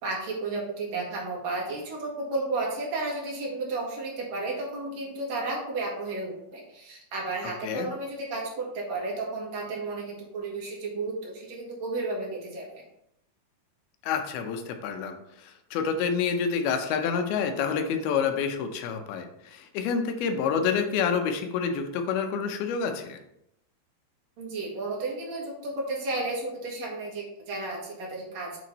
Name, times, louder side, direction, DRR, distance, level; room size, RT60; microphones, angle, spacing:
voice 1, 0.0-12.8 24.4-28.6, right 2 dB, 55° right, -3 dB, 2.3 m, -33 dB
voice 2, 14.0-23.2, left 6 dB, 80° left, 6 dB, 2.6 m, -28 dB
7.7 x 3.7 x 4.0 m, 0.80 s
omnidirectional pair, 4.4 m